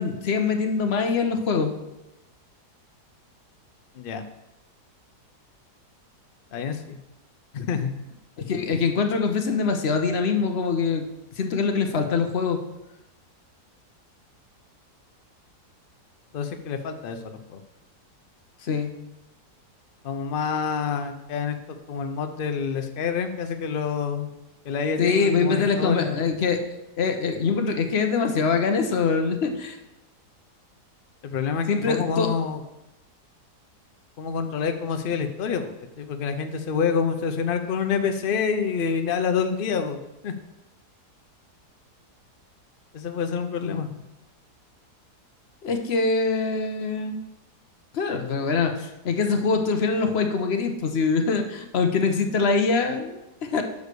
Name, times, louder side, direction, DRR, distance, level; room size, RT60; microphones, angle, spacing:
voice 1, 0.0-1.7 8.4-11.0 11.4-12.6 18.6-18.9 25.0-26.6 27.0-29.8 31.7-32.3 43.6-43.8 45.6-47.2 47.9-53.6, left 4 dB, 50° left, 5 dB, 0.9 m, -24 dB
voice 2, 6.5-7.0 7.5-7.9 16.3-17.6 20.0-21.6 21.9-24.3 24.6-26.2 31.2-32.6 34.2-40.3 42.9-43.9, left 6 dB, 90° left, 7 dB, 0.4 m, -27 dB
6.6 x 4.8 x 6.7 m, 0.95 s
omnidirectional pair, 1.7 m